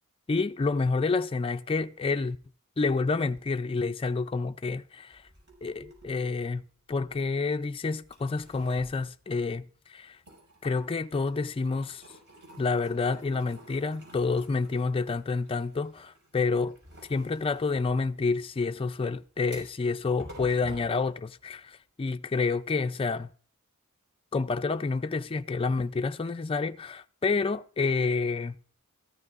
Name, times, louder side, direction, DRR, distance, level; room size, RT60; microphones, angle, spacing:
voice 1, 0.3-2.4 2.8-5.2 5.6-6.6 6.9-10.2 10.6-12.0 12.6-16.8 17.1-23.3 24.3-28.5, left 4 dB, 25° left, 0.4 m, -29 dB
sound 1, 5.1-7.6 8.0-9.8 10.1-21.8, right 1 dB, 55° right, 5.4 m, -51 dB
14.0 x 13.5 x 2.4 m
head